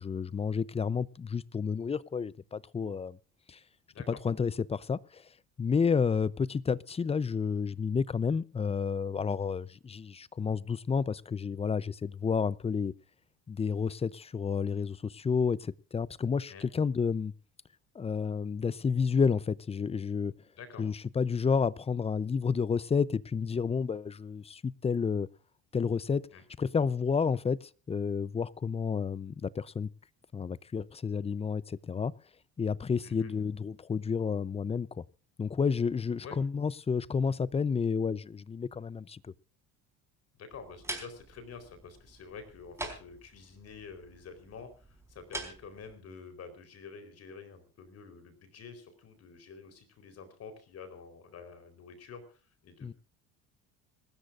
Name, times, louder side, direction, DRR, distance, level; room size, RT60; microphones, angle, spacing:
voice 1, 0.0-3.2 3.5-3.6 4.1-5.3 5.6-12.9 13.5-17.3 17.9-20.4 20.8-25.3 25.7-26.3 26.6-29.9 30.3-32.1 32.6-35.0 35.4-39.3 52.8-52.9, left 5 dB, 20° left, 0.6 m, -30 dB
voice 2, 40.4-52.9, left 5 dB, 50° left, 4.2 m, -48 dB
sound 1, 40.5-45.9, right 2 dB, 10° right, 4.3 m, -45 dB
26.0 x 13.5 x 2.6 m
supercardioid pair, 100°, 32 cm